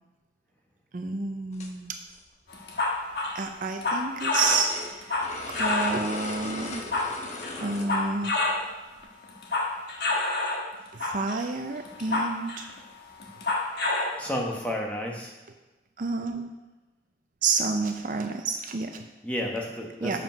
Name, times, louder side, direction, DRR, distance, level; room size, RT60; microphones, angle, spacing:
voice 1, 0.9-2.0 3.3-5.2 5.5-6.8 7.6-8.5 10.9-12.7 16.0-16.5 17.4-19.1 20.0-20.2, right 4 dB, 45° right, 5 dB, 0.5 m, -29 dB
sound 1, 1.5-1.7 2.1-2.2 3.4-3.5 4.4-8.1 8.5-8.6 9.0-9.1, left 2 dB, 35° left, 0.8 m, -38 dB
sound 2, 2.5-6.1 6.6-8.7 9.0-10.7 11.0-11.4 11.8-12.8 13.2-14.2, left 2 dB, 60° left, 1.2 m, -28 dB
voice 2, 14.2-15.3 19.2-20.2, left 1 dB, 5° left, -1 dB, 1.0 m, -31 dB
7.5 x 5.0 x 5.4 m, 1.1 s
head